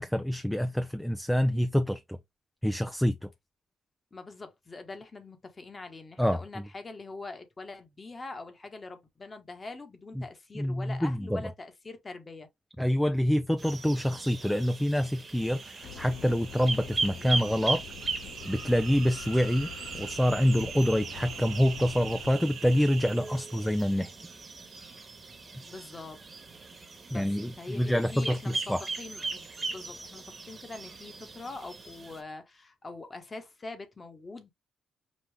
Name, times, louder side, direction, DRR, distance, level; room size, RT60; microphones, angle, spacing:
voice 1, 0.0-2.2 2.6-3.3 6.2-6.4 10.2-10.3 10.5-11.4 12.8-17.8 18.4-19.7 20.0-24.1 27.1-28.8, equal, 5° left, 0.4 m, -26 dB
voice 2, 4.1-12.5 25.6-26.2 27.1-34.5, left 3 dB, 30° left, 1.2 m, -43 dB
sound 1, 13.6-32.2, right 3 dB, 30° right, 1.3 m, -39 dB
sound 2, 15.4-23.9, right 8 dB, 75° right, 1.1 m, -43 dB
sound 3, 15.8-22.3, left 9 dB, 75° left, 0.4 m, -46 dB
5.3 x 2.4 x 3.4 m
cardioid pair, 90°, 0 cm